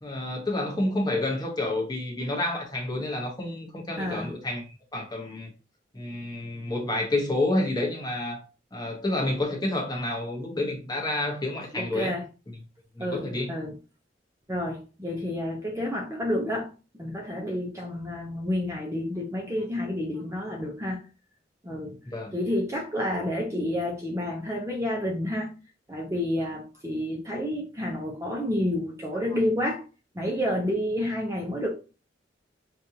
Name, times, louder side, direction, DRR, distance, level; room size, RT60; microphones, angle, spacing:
voice 1, 0.0-5.5 5.9-8.4 8.7-12.2 13.0-13.5 22.0-22.3, left 2 dB, 20° left, 1.1 m, -29 dB
voice 2, 4.0-4.3 11.7-12.2 13.0-13.7 14.5-16.7 16.9-21.0 21.6-22.0 22.3-25.5 25.9-29.8 30.1-31.7, left 1 dB, 15° right, 0.8 m, -29 dB
5.2 x 2.5 x 2.8 m
head